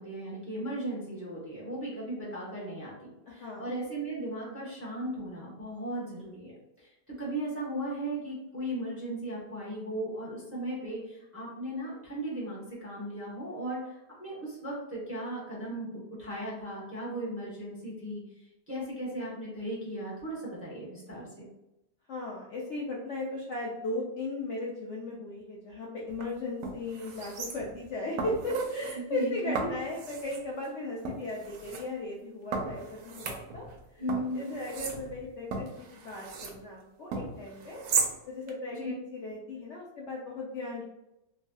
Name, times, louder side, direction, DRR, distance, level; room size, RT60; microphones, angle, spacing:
voice 1, 0.0-2.9 3.3-6.5 7.2-13.8 14.2-18.2 18.7-21.5 28.9-29.7 34.0-34.5 38.7-38.9, right 1 dB, 10° right, -7 dB, 0.6 m, -36 dB
voice 2, 3.3-3.7 22.1-33.7 33.9-34.1 34.3-35.7 35.9-37.8 38.3-40.8, left 2 dB, 90° left, -3 dB, 0.6 m, -36 dB
sound 1, 26.1-26.2 26.6-27.8 28.2-29.0 29.5-30.4 31.0-31.8 32.5-33.8 34.1-36.6 37.1-38.1 38.5-38.6, right 4 dB, 70° right, 0.9 m, -35 dB
3.0 x 2.7 x 2.2 m, 0.88 s
omnidirectional pair, 1.8 m